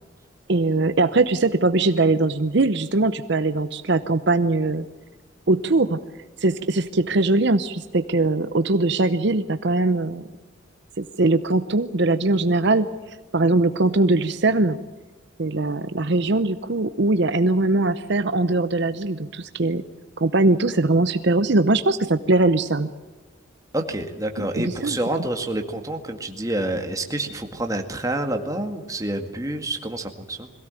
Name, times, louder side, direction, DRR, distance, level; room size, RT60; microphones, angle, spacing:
voice 1, 0.5-4.9 5.5-6.0 6.4-10.2 11.0-12.9 13.3-14.8 15.4-19.8 20.2-22.9 24.4-25.0, right 2 dB, 55° right, 11 dB, 0.8 m, -21 dB
voice 2, 23.7-30.5, right 1 dB, 15° right, 5 dB, 2.0 m, -28 dB
22.5 x 17.0 x 9.1 m, 1.3 s
head